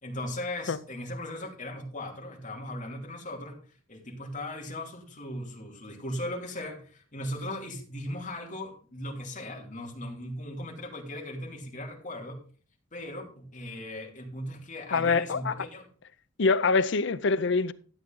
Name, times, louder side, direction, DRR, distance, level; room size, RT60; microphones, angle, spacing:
voice 1, 0.0-3.6 3.9-12.4 12.9-15.9, left 1 dB, 40° left, 2.9 m, -38 dB
voice 2, 14.9-15.5 16.4-17.7, left 4 dB, 65° left, 0.6 m, -24 dB
13.0 x 8.2 x 3.9 m
head